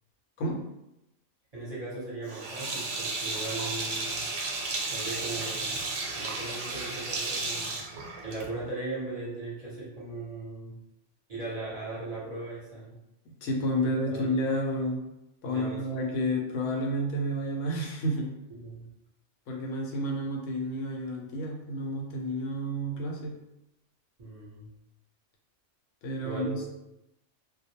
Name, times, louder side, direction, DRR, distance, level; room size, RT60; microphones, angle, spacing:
voice 1, 1.5-4.2 4.9-5.7 6.1-10.7 11.3-12.9 14.1-14.3 15.4-16.1 18.6-18.9 24.2-24.7 26.2-26.7, right 2 dB, 35° right, -8 dB, 0.8 m, -38 dB
Sink (filling or washing), 2.3-8.7, right 3 dB, 75° right, 0.9 m, -33 dB
voice 2, 13.4-15.0 15.4-18.3 19.5-23.4 26.0-26.7, equal, 90° left, 0 dB, 0.9 m, -30 dB
2.2 x 2.1 x 2.8 m, 0.89 s
omnidirectional pair, 1.3 m